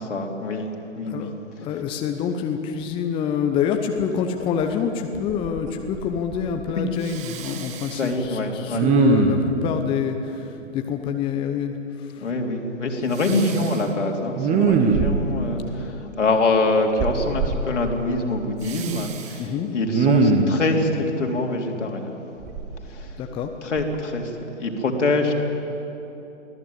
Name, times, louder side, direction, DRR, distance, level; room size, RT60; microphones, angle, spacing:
voice 1, 0.0-1.3 6.8-6.9 7.9-8.9 12.2-22.2 22.8-23.2 23.6-25.3, left 2 dB, 70° left, 1 dB, 3.5 m, -25 dB
voice 2, 1.6-11.7 12.1-12.3 19.4-19.7 23.2-23.5, left 7 dB, 15° left, 5 dB, 0.9 m, -26 dB
Respiratory sounds, 4.6-4.7 5.1-5.7 5.9-6.7 7.0-8.1 8.7-9.6 13.2-13.8 14.3-15.4 17.0-17.6 18.6-19.3 19.8-20.6 22.4-23.4 23.8-24.0, right 4 dB, 20° right, 1.4 m, -22 dB
24.0 x 16.5 x 8.8 m, 3.0 s
figure-of-eight pair, 125°, 38 cm